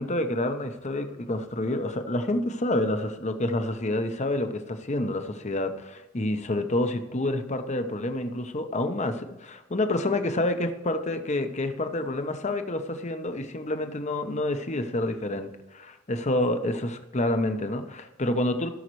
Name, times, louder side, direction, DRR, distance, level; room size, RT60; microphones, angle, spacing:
voice 1, 0.0-18.7, left 1 dB, 35° left, 8 dB, 1.0 m, -28 dB
16.5 x 6.5 x 3.2 m, 1.0 s
head